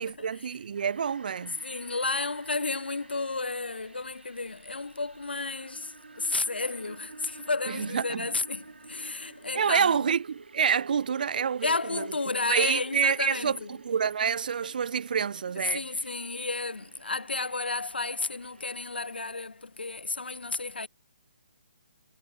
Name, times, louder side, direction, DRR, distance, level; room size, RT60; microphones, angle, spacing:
voice 1, 0.0-1.6 7.7-8.3 9.5-12.1 12.5-15.8, right 7 dB, 55° right, 1.1 m, -28 dB
sound 1, 0.7-19.3, right 3 dB, 85° right, 7.7 m, -50 dB
voice 2, 1.6-10.0 11.6-13.7 15.7-20.9, left 3 dB, 85° left, 5.4 m, -32 dB
figure-of-eight pair, 145°, 5 cm